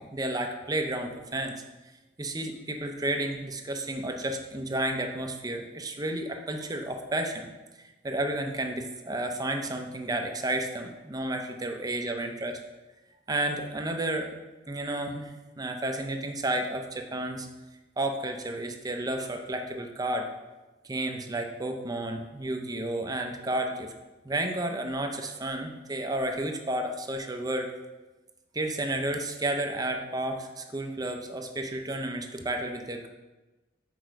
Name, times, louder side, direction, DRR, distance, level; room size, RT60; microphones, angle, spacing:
voice 1, 0.0-1.5 2.2-7.5 7.8-12.6 13.3-14.3 14.7-17.5 18.0-20.3 20.8-23.9 24.2-27.7 28.5-33.1, right 1 dB, 20° right, 4 dB, 0.6 m, -32 dB
6.4 x 4.6 x 5.1 m, 1.1 s
head